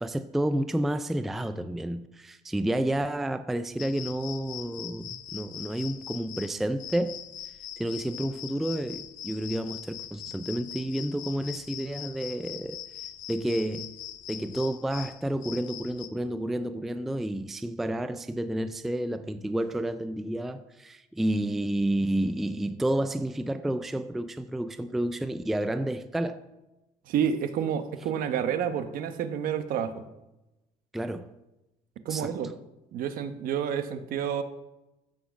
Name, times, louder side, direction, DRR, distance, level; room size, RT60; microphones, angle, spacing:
voice 1, 0.0-7.2 7.8-12.8 13.3-13.9 14.3-26.4 30.9-31.3 32.1-32.3, right 1 dB, ahead, 0.3 m, -30 dB
sound 1, 3.8-16.1, left 11 dB, 55° left, 0.8 m, -42 dB
voice 2, 27.1-30.0 32.0-32.5 32.9-34.4, right 8 dB, 65° right, 1.1 m, -29 dB
14.5 x 6.3 x 6.9 m
cardioid pair, 175°, 16 cm